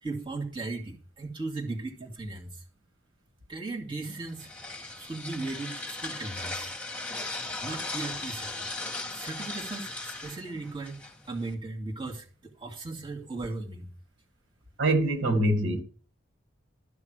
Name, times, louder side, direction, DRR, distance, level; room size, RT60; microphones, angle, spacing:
voice 1, 0.0-2.6 3.5-4.5 5.0-6.7 7.6-8.6 9.1-13.9, right 3 dB, 25° right, 2.3 m, -37 dB
sound 1, 4.0-11.5, left 2 dB, 5° left, 2.0 m, -38 dB
voice 2, 14.8-15.8, right 1 dB, 85° right, 2.1 m, -24 dB
13.0 x 6.5 x 6.5 m
head